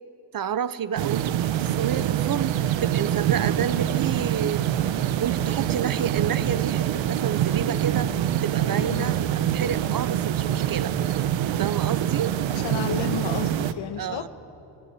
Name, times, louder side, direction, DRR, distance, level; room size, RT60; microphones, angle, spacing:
voice 1, 0.3-4.6 5.2-8.1 8.4-10.9 11.6-12.3 14.0-14.3, right 8 dB, 50° right, 15 dB, 1.0 m, -30 dB
sound 1, 1.0-13.7, right 11 dB, 90° right, 1.1 m, -25 dB
voice 2, 8.8-9.1 12.5-14.3, left 7 dB, 85° left, 9 dB, 1.6 m, -32 dB
27.0 x 19.5 x 9.3 m, 2.9 s
cardioid pair, 85°, 44 cm